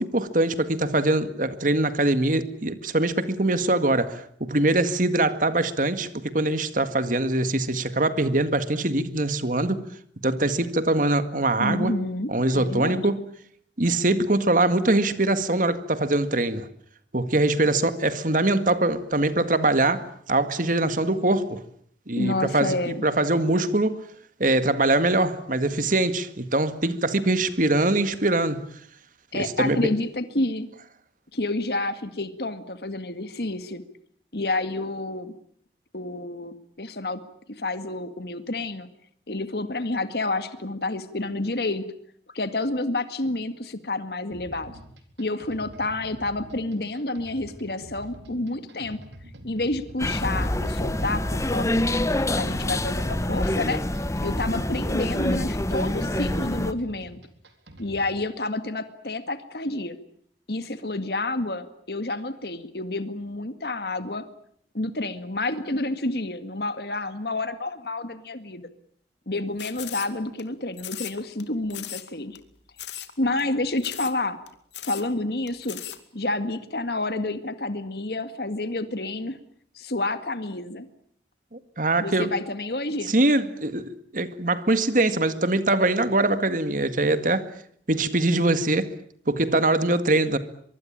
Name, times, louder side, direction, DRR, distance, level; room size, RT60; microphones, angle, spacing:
voice 1, 0.0-9.8 10.2-11.9 12.3-13.2 13.8-16.7 17.1-21.6 22.1-24.0 24.4-28.6 29.3-29.9 81.5-82.3 83.1-87.5 87.9-88.9 89.3-90.4, right 2 dB, 50° right, 1.9 m, -23 dB
voice 2, 11.6-13.1 22.1-23.0 29.3-30.7 31.3-33.8 34.3-35.3 35.9-37.2 37.5-38.9 39.3-41.8 42.3-44.8 45.2-49.0 49.4-51.8 52.3-53.8 54.2-57.2 57.8-60.0 60.5-64.3 64.7-68.7 69.3-72.4 73.2-74.4 74.8-75.8 76.1-79.4 79.8-80.9 82.0-83.1, left 2 dB, 60° left, 2.0 m, -29 dB
sound 1, 44.3-58.2, right 1 dB, 85° right, 4.0 m, -46 dB
sound 2, 50.0-56.7, left 1 dB, 15° left, 1.0 m, -26 dB
sound 3, 69.6-70.4 70.8-71.4 71.7-72.1 72.3-72.4 72.8-73.1 73.4-73.5 73.8-74.2 74.5-74.6 74.7-75.1 75.5-76.0, left 12 dB, 85° left, 2.5 m, -37 dB
24.0 x 23.5 x 8.8 m
head